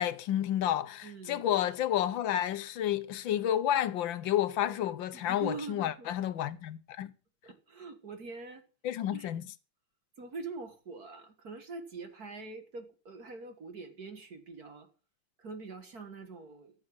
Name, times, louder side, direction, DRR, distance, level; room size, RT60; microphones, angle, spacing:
voice 1, 0.0-7.1 8.8-9.5, left 11 dB, 70° left, 1.4 m, -30 dB
voice 2, 1.0-1.5 5.1-6.1 7.4-8.6 9.1-9.3 10.2-14.9 15.4-16.7, right 3 dB, 45° right, 2.0 m, -44 dB
14.5 x 7.6 x 6.0 m
omnidirectional pair, 2.4 m